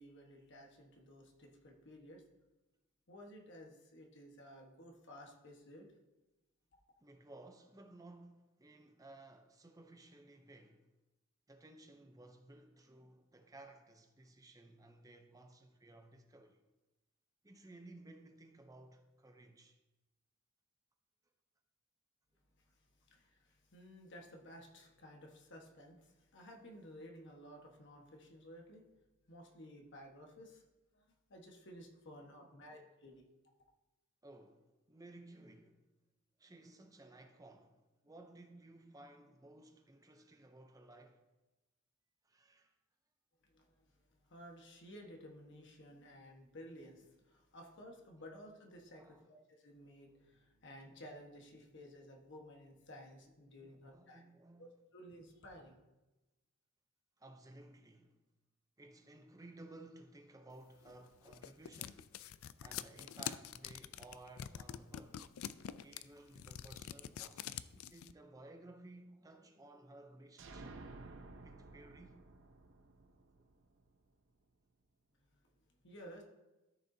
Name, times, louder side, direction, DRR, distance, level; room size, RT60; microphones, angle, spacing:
voice 1, 0.0-2.3 3.1-5.9 22.7-28.9 29.3-30.6 30.9-33.2 43.4-54.2 54.6-55.8 75.3-75.4 75.8-76.2, equal, 55° left, 1.4 m, -55 dB
voice 2, 7.0-10.9 11.5-16.6 17.4-19.8 32.1-32.9 34.2-35.9 36.4-41.2 42.2-42.7 48.9-49.3 53.6-54.7 57.2-58.2 58.8-62.1 62.6-65.3 65.8-67.6 67.9-70.9 71.4-72.2, right 2 dB, 15° right, 0.6 m, -57 dB
sound 1, 60.9-68.1, left 10 dB, 70° left, 0.3 m, -45 dB
sound 2, 70.4-74.1, right 3 dB, 60° right, 0.8 m, -53 dB
13.5 x 6.8 x 2.8 m
head